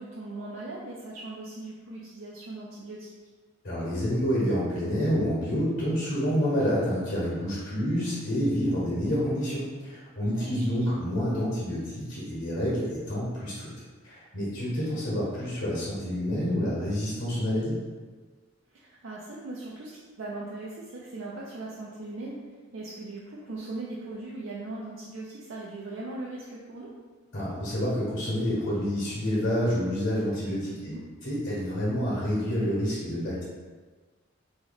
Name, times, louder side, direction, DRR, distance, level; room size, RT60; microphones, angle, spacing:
voice 1, 0.0-3.1 7.4-7.9 10.3-10.6 14.8-14.9 18.7-26.9 30.7-31.0, right 2 dB, 80° right, -6 dB, 0.5 m, -39 dB
voice 2, 3.6-13.7 14.0-17.8 27.3-30.9 31.2-33.4, equal, 70° left, -8 dB, 1.3 m, -28 dB
3.1 x 2.9 x 4.0 m, 1.4 s
head